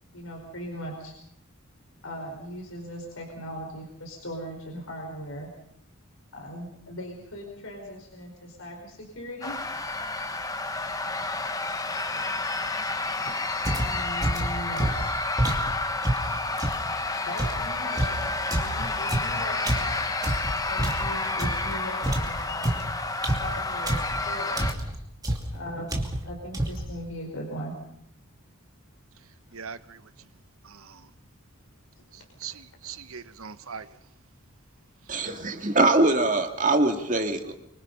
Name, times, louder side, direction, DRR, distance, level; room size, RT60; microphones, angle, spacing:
voice 1, 0.1-1.1 2.0-5.5 6.3-9.6 12.1-12.3 13.2-13.4 13.6-15.2 16.9-19.9 20.7-22.9 23.4-25.0 25.5-25.9 26.2-27.8 32.2-32.3, equal, 70° left, 4.8 m, -39 dB
sound 1, 9.4-24.7, left 3 dB, 15° left, 1.1 m, -30 dB
sound 2, 13.6-16.9 17.4-21.7 22.0-24.2 24.6-25.0 25.2-25.6 25.9-26.3 26.5-26.9, right 1 dB, 15° right, 2.7 m, -28 dB
voice 2, 29.5-30.0 30.6-31.1 32.1-33.9, right 7 dB, 70° right, 1.0 m, -41 dB
voice 3, 35.1-37.5, right 2 dB, 35° right, 1.9 m, -23 dB
24.5 x 24.5 x 5.5 m
head